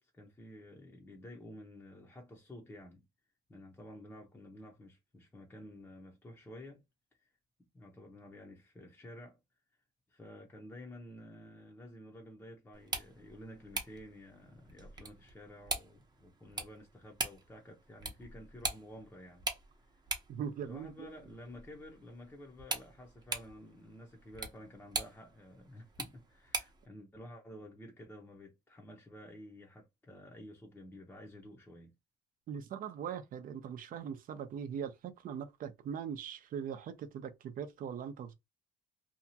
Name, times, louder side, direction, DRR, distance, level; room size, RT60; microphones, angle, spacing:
voice 1, 0.0-3.0 3.5-6.8 7.2-7.3 7.7-9.4 10.1-19.5 19.9-20.0 20.4-31.9, left 1 dB, 10° left, 0.7 m, -51 dB
sound 1, 12.7-26.9, right 3 dB, 25° right, 0.8 m, -43 dB
voice 2, 20.3-21.1 32.5-38.4, right 8 dB, 55° right, 0.6 m, -41 dB
2.7 x 2.3 x 2.7 m
cardioid pair, 110°, 17 cm